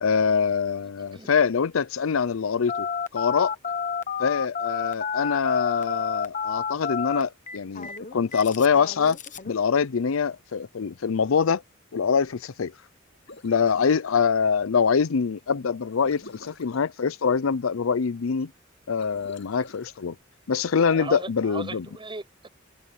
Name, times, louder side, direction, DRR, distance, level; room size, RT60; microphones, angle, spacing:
voice 1, 0.0-2.9 3.1-3.6 4.2-9.2 9.4-11.6 11.9-12.7 13.4-18.5 18.9-20.1 20.5-21.9, left 6 dB, 85° left, 0.6 m, -24 dB
Telephone, 2.7-9.5, left 6 dB, 40° left, 1.1 m, -30 dB
sound 1, 13.1-14.0 15.9-16.8 18.9-20.0, left 2 dB, 65° left, 7.6 m, -48 dB
voice 2, 20.9-22.5, right 3 dB, 25° right, 6.1 m, -37 dB
head